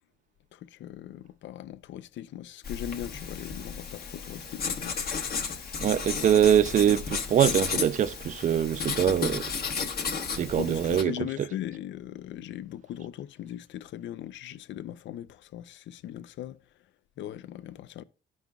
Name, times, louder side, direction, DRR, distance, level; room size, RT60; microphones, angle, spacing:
voice 1, 0.5-5.0 10.6-16.6 17.2-18.0, left 11 dB, 70° left, 0.4 m, -39 dB
Writing, 2.6-11.0, left 5 dB, 50° left, 1.0 m, -33 dB
voice 2, 5.8-9.5 10.4-11.5, right 9 dB, 40° right, 0.4 m, -24 dB
13.5 x 5.3 x 2.3 m
cardioid pair, 90°, 20 cm